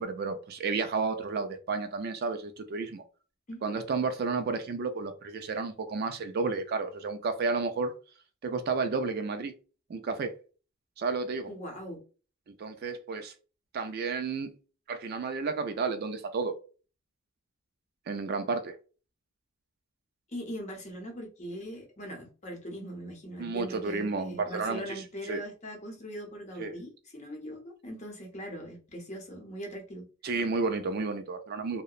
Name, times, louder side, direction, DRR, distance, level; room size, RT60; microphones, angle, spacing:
voice 1, 0.0-3.0 3.6-7.9 8.4-9.5 9.9-10.3 11.0-11.5 12.5-13.3 13.7-14.5 14.9-16.5 18.1-18.8 23.4-25.0 25.3-25.4 26.6-26.7 30.2-31.8, right 4 dB, 45° right, 8 dB, 0.3 m, -31 dB
voice 2, 11.5-12.0 20.3-30.1, equal, 35° left, 2 dB, 0.7 m, -41 dB
2.7 x 2.1 x 2.3 m, 0.36 s
head